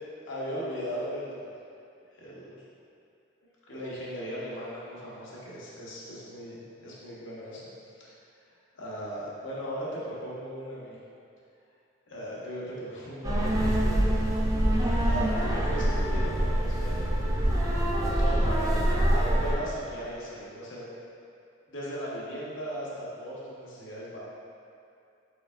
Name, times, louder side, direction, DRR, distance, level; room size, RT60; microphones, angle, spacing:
voice 1, 0.3-1.5 2.1-2.6 3.7-7.7 8.0-8.2 8.7-11.0 12.1-14.2 15.0-17.5 18.0-20.9 21.7-24.2, equal, 70° left, -7 dB, 1.1 m, -37 dB
sound 1, 13.2-19.5, right 1 dB, 20° right, 0.5 m, -25 dB
5.0 x 4.3 x 2.4 m, 2.5 s
head